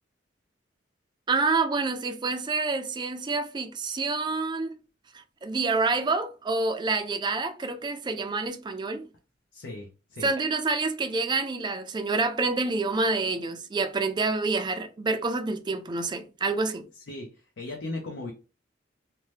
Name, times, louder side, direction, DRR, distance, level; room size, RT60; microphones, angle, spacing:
voice 1, 1.3-4.7 5.1-9.1 10.2-16.9, right 3 dB, 25° right, 0.3 m, -27 dB
voice 2, 9.5-10.3 16.9-18.3, left 2 dB, 75° left, 0.6 m, -37 dB
2.8 x 2.1 x 3.2 m
head